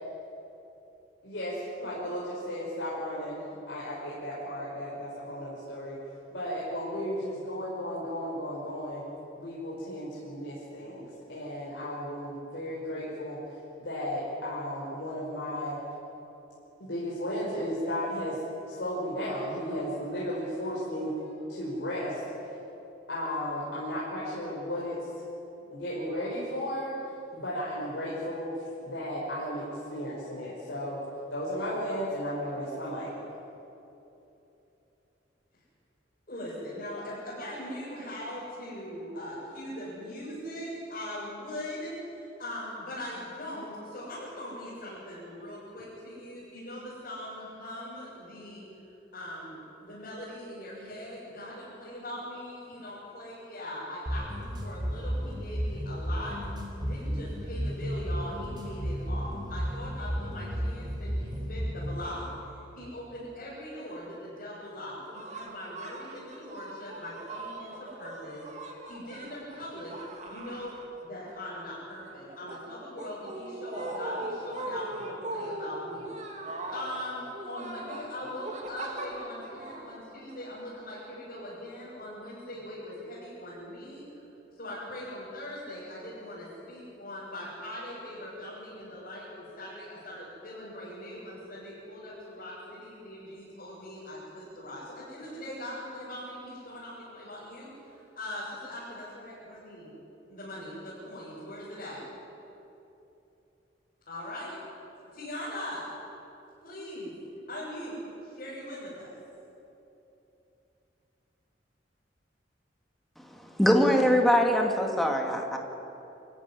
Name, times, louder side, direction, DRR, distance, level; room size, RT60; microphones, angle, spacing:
voice 1, 1.2-6.0 6.3-9.0 9.4-15.8 16.8-22.2 23.1-25.3 25.7-27.0 27.3-28.5 28.8-31.0 31.3-33.1, equal, 80° left, -7 dB, 5.2 m, -34 dB
voice 2, 36.3-48.6 49.1-56.3 56.8-62.3 62.5-69.9 70.3-70.7 71.0-76.4 76.7-84.0 84.6-99.9 100.3-102.0 104.1-104.6 105.1-105.9 106.6-107.1 107.5-107.9 108.2-109.1, left 1 dB, 50° left, -9 dB, 7.9 m, -41 dB
sound 1, 54.1-62.1, equal, 25° right, 3.7 m, -33 dB
sound 2, 65.1-71.3 71.6-80.5, right 2 dB, 40° right, 2.8 m, -40 dB
voice 3, 113.6-115.6, equal, ahead, 2 dB, 2.2 m, -22 dB
25.5 x 15.5 x 9.9 m, 3.0 s
head